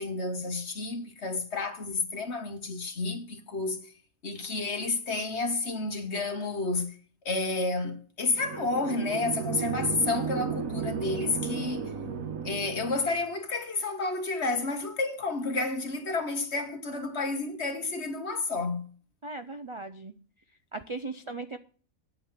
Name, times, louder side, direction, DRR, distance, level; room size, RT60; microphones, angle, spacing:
voice 1, 0.0-3.9 4.2-7.0 7.3-11.9 12.4-18.9, left 3 dB, 50° left, 1.9 m, -30 dB
sound 1, 8.3-13.2, right 6 dB, 80° right, 1.6 m, -34 dB
voice 2, 19.2-20.1 20.7-21.6, right 3 dB, 40° right, 0.4 m, -38 dB
9.5 x 8.6 x 5.9 m
omnidirectional pair, 1.4 m